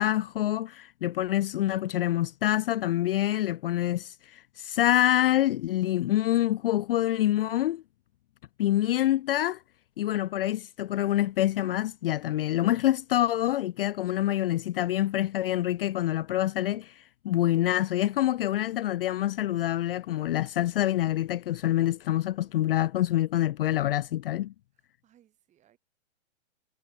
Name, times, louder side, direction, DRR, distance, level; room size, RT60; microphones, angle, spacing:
voice 1, 0.0-7.8 8.6-9.6 10.0-24.5, left 13 dB, 50° left, 0.5 m, -26 dB
voice 2, 5.7-6.3 22.1-22.7 25.0-25.8, right 11 dB, 20° right, 7.7 m, -65 dB
hypercardioid pair, 150°, 36 cm